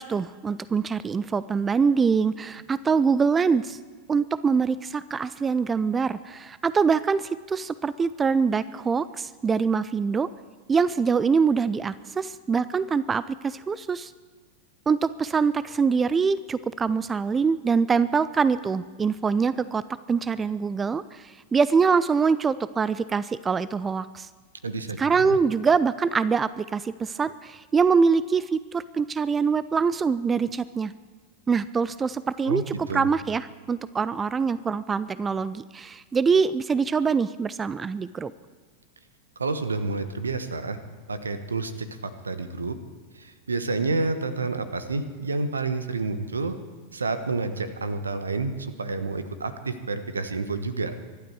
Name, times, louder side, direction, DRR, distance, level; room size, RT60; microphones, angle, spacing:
voice 1, 0.0-3.8 4.1-10.3 10.7-14.1 14.9-19.8 20.1-24.3 25.0-30.9 31.5-38.3, right 5 dB, 15° right, 17 dB, 0.4 m, -24 dB
voice 2, 24.6-25.4 32.5-33.1 39.4-40.8 41.1-42.8 43.1-46.5 46.9-50.9, right 3 dB, 75° right, 11 dB, 1.1 m, -29 dB
24.5 x 12.0 x 4.7 m, 1.4 s
figure-of-eight pair, 90°, 0 cm